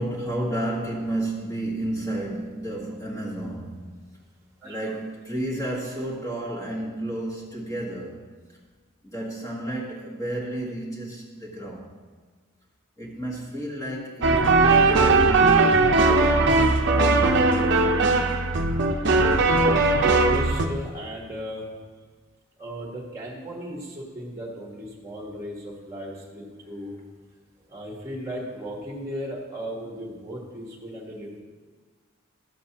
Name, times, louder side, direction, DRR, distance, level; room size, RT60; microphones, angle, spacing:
voice 1, 0.0-4.0 4.6-8.3 9.0-12.0 13.0-16.6 27.7-27.8, right 1 dB, 15° left, -6 dB, 1.5 m, -32 dB
voice 2, 4.6-4.9 20.2-21.6 22.6-26.9 27.7-31.4, equal, 15° right, -1 dB, 1.4 m, -36 dB
sound 1, 14.2-20.7, right 3 dB, 55° right, 0.7 m, -19 dB
12.5 x 7.5 x 2.9 m, 1.5 s
head